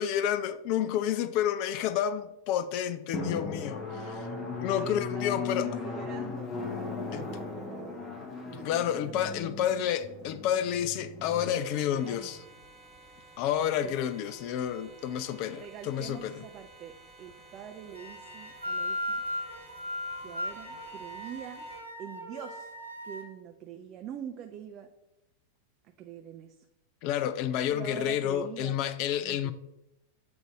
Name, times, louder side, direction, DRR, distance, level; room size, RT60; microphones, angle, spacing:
voice 1, 0.0-4.3 4.6-5.7 7.1-7.3 8.5-12.4 13.4-16.4 27.0-29.5, left 10 dB, 45° left, 0.4 m, -30 dB
Drum, 3.1-12.4, left 4 dB, 25° left, 0.8 m, -37 dB
voice 2, 4.7-8.1 8.4-8.8 9.0-9.6 11.9-12.4 13.8-14.0 15.5-19.2 20.2-21.7 22.0-22.7 23.0-24.9 25.8-26.6 27.7-28.8 29.2-29.5, right 9 dB, 35° right, 0.4 m, -44 dB
sound 1, 11.5-21.8, right 2 dB, 10° right, 1.4 m, -54 dB
sound 2, 17.9-23.2, left 1 dB, 85° right, 0.7 m, -37 dB
7.8 x 2.6 x 4.6 m
figure-of-eight pair, 90°, 0 cm